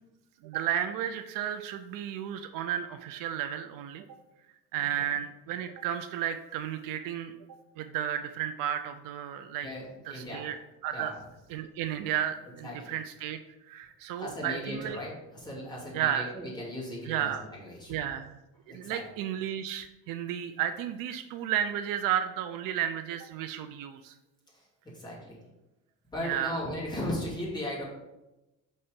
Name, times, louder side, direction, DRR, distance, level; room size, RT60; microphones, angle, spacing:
voice 1, 0.4-4.1 4.7-7.4 7.8-9.7 10.1-10.6 10.8-11.1 11.5-13.4 13.7-15.0 15.9-16.3 17.1-17.4 17.9-18.3 18.7-24.1 26.2-26.6, right 10 dB, 65° right, 9 dB, 0.5 m, -33 dB
voice 2, 9.6-10.5 10.9-11.1 12.6-13.0 14.2-17.9 18.7-19.0 24.5-24.7 24.9-25.4 26.1-27.8, left 1 dB, 10° left, -6 dB, 2.4 m, -37 dB
5.6 x 4.2 x 5.1 m, 0.98 s
cardioid pair, 145°, 36 cm